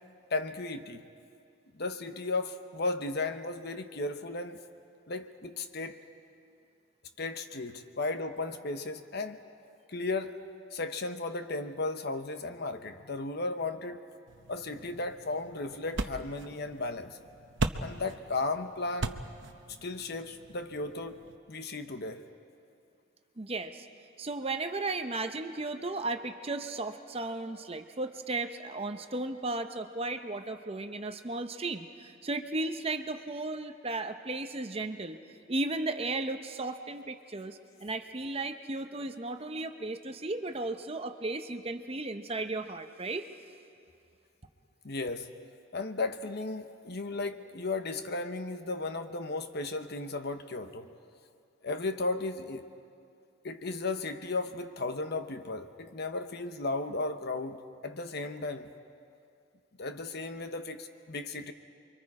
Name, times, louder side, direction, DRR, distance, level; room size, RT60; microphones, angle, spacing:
voice 1, 0.3-1.0 1.8-4.6 5.1-6.0 7.2-9.4 9.9-10.3 10.7-14.0 14.5-17.2 17.8-19.2 19.8-22.2 44.8-45.3 45.7-50.9 51.6-52.7 53.4-58.7 59.8-61.5, left 3 dB, 50° left, 8 dB, 0.9 m, -35 dB
sound 1, 14.3-21.4, right 3 dB, 60° right, 0.9 m, -39 dB
voice 2, 23.4-23.9 24.2-35.2 35.5-43.3, right 2 dB, 30° right, 7 dB, 0.7 m, -35 dB
29.0 x 23.5 x 4.9 m, 2.5 s
head